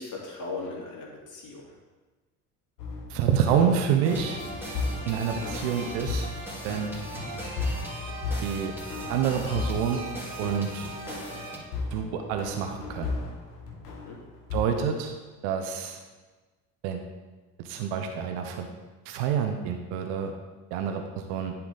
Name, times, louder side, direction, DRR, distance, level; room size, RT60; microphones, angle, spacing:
voice 1, 0.0-1.7 13.9-14.2, left 3 dB, 40° left, -3 dB, 2.7 m, -38 dB
sound 1, 2.8-14.6, left 3 dB, 80° left, 1.4 m, -36 dB
voice 2, 3.1-4.4 5.1-6.3 6.6-6.9 8.4-8.7 9.1-10.0 10.4-10.9 11.9-13.1 14.5-15.1 15.4-16.0 16.8-17.0 17.6-18.7 19.1-20.3 20.7-21.5, right 8 dB, 70° right, 5 dB, 0.9 m, -27 dB
sound 2, 3.9-6.8, left 1 dB, 25° left, 1.8 m, -47 dB
sound 3, 4.0-11.6, right 1 dB, 5° right, 2.8 m, -38 dB
10.5 x 4.7 x 3.9 m, 1.3 s
hypercardioid pair, 55°, 48 cm